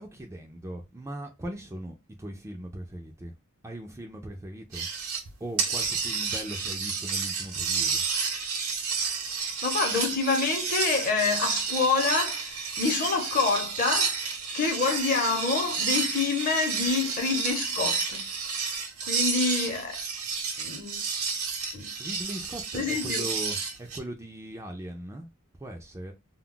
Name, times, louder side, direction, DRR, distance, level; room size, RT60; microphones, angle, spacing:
voice 1, 0.0-3.3 3.6-4.9 5.4-8.0 22.0-25.3 25.6-26.1, right 1 dB, 15° right, 0.4 m, -39 dB
sound 1, 4.7-5.3 5.6-24.0, right 5 dB, 70° right, 0.7 m, -30 dB
voice 2, 9.6-14.1 14.5-18.2 19.0-20.0 20.6-21.0 21.7-21.9 22.7-23.3, left 4 dB, 40° left, 0.8 m, -27 dB
2.2 x 2.0 x 3.6 m
head